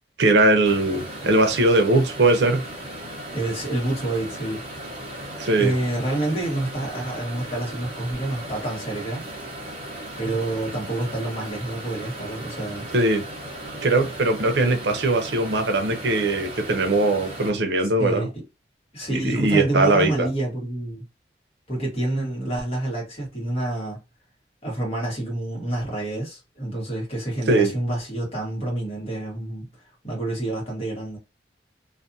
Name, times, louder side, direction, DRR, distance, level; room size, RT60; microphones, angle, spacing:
voice 1, 0.2-2.6 5.4-5.7 12.9-13.2 13.8-18.3 19.1-20.3 27.5-27.7, right 2 dB, 85° right, 0.6 m, -20 dB
sound 1, 0.6-17.5, right 1 dB, 35° right, 0.9 m, -37 dB
voice 2, 3.3-4.6 5.6-9.3 10.2-12.9 18.0-18.4 18.9-21.0 21.7-24.0 24.6-29.7 30.0-31.2, right 1 dB, 35° left, 1.3 m, -28 dB
2.5 x 2.5 x 2.6 m
head